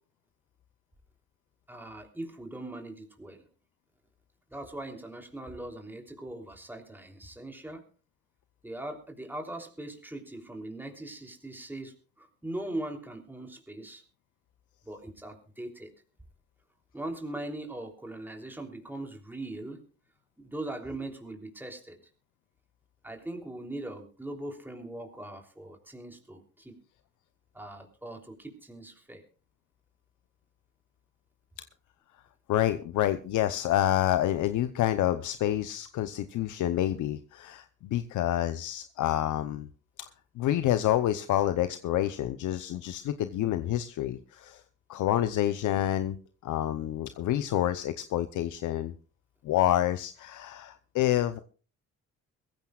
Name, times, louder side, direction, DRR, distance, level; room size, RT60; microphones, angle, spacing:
voice 1, 1.7-3.4 4.5-7.8 8.6-14.0 14.8-15.9 16.9-19.8 20.4-22.0 23.0-26.8 27.5-29.2, right 1 dB, 5° right, 2 dB, 3.3 m, -40 dB
voice 2, 32.5-39.7 40.4-44.6 44.9-46.2 46.4-48.9 49.4-51.4, left 12 dB, 80° left, 10 dB, 0.8 m, -28 dB
22.5 x 15.0 x 2.4 m, 0.37 s
cardioid pair, 90°, 30 cm